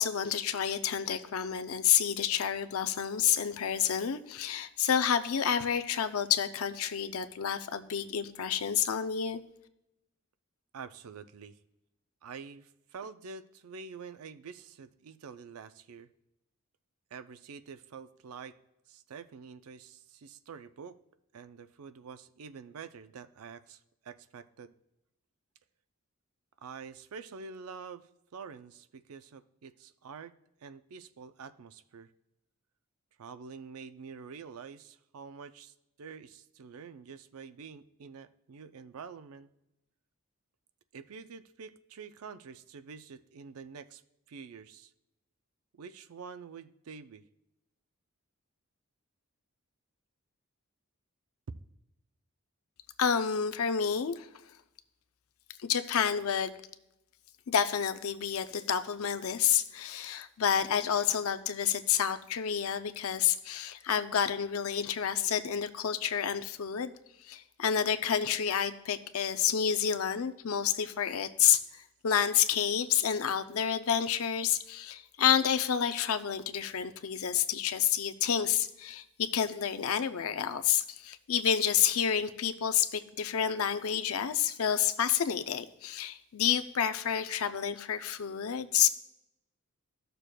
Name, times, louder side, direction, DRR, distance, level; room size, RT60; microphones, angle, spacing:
voice 1, 0.0-9.4 53.0-54.3 55.6-56.5 57.5-66.9 67.2-88.9, left 8 dB, 75° left, 11 dB, 0.5 m, -29 dB
voice 2, 10.7-11.6 12.2-16.1 17.1-18.6 18.9-21.0 21.3-24.7 26.6-30.3 30.6-32.1 33.2-39.5 40.9-44.0 44.3-44.9 45.7-47.2, right 5 dB, 80° right, 12 dB, 0.5 m, -47 dB
13.5 x 6.7 x 2.2 m, 0.86 s
head